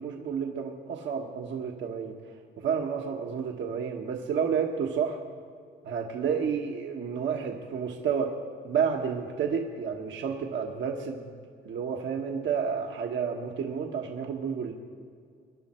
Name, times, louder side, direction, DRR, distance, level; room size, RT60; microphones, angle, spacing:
voice 1, 0.0-2.2 2.6-5.2 5.8-8.3 8.6-11.3 11.6-14.7, right 6 dB, 70° right, 1 dB, 1.2 m, -30 dB
23.5 x 10.5 x 4.4 m, 2.2 s
cardioid pair, 90°, 20 cm